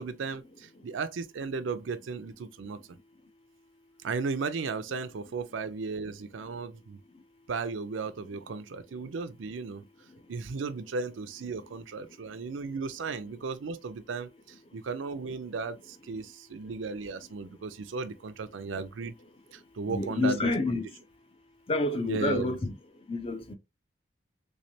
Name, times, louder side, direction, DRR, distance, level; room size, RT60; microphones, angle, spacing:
voice 1, 0.0-2.8 4.0-7.0 7.5-9.8 10.3-19.1 19.5-20.8 22.0-22.6, right 4 dB, 90° right, 0.5 m, -35 dB
voice 2, 19.9-20.9 21.7-22.7 23.1-23.6, left 2 dB, 30° left, 0.5 m, -28 dB
3.5 x 3.2 x 2.7 m
head